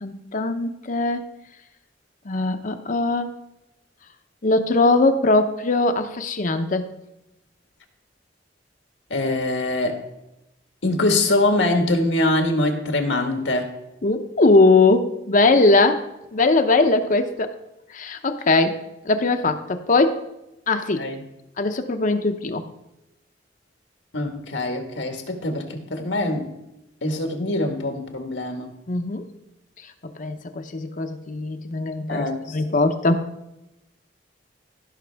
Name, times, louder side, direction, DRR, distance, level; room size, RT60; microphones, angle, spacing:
voice 1, 0.0-1.2 2.3-3.3 4.4-6.9 14.0-16.0 16.3-17.5 17.9-18.8 19.1-20.2 20.7-21.0 21.6-22.6 28.9-29.2 30.2-32.3 32.5-33.2, left 3 dB, 45° left, 7 dB, 0.7 m, -20 dB
voice 2, 9.1-10.0 10.8-13.7 16.8-17.0 21.0-21.2 24.1-26.5 27.0-28.7 32.1-32.5, left 2 dB, 90° left, 4 dB, 1.6 m, -23 dB
16.0 x 6.0 x 3.5 m, 0.91 s
head